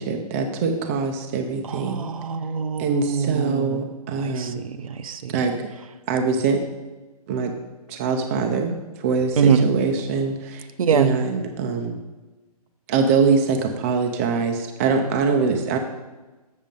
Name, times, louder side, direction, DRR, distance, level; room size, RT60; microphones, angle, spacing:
voice 1, 0.0-2.1 2.8-4.6 5.3-5.7 6.1-6.6 7.3-7.5 7.9-10.6 10.9-12.0 12.9-15.8, right 5 dB, 20° right, 4 dB, 0.5 m, -23 dB
voice 2, 1.7-3.8 4.2-5.4 9.4-9.6 10.8-11.1, right 6 dB, 60° right, 10 dB, 0.7 m, -23 dB
7.4 x 6.3 x 5.3 m, 1.2 s
hypercardioid pair, 155°, 20 cm